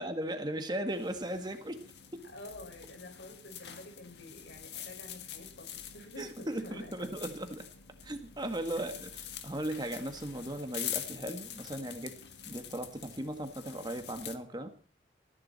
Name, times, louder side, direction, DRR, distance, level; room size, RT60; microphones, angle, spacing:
voice 1, 0.0-1.8 6.2-7.7 8.0-12.1 12.5-14.7, right 1 dB, 25° right, 7 dB, 1.9 m, -37 dB
sound 1, 0.9-14.4, left 9 dB, 75° left, 1.6 m, -45 dB
voice 2, 2.2-7.2 8.8-9.1, left 1 dB, 90° left, 3 dB, 5.9 m, -49 dB
20.0 x 14.5 x 4.3 m, 0.40 s
head